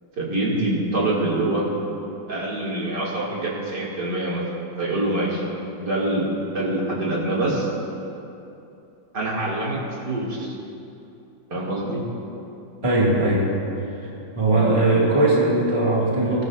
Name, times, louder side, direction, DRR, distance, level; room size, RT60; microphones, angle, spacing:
voice 1, 0.2-1.7 2.3-4.4 4.8-5.4 5.8-6.2 6.5-7.7 9.1-9.8 10.0-10.5 11.5-12.0, right 2 dB, 60° right, -6 dB, 3.1 m, -25 dB
voice 2, 12.8-13.5 14.3-16.4, right 2 dB, 15° right, -5 dB, 2.1 m, -19 dB
22.0 x 14.5 x 2.6 m, 2.8 s
omnidirectional pair, 2.1 m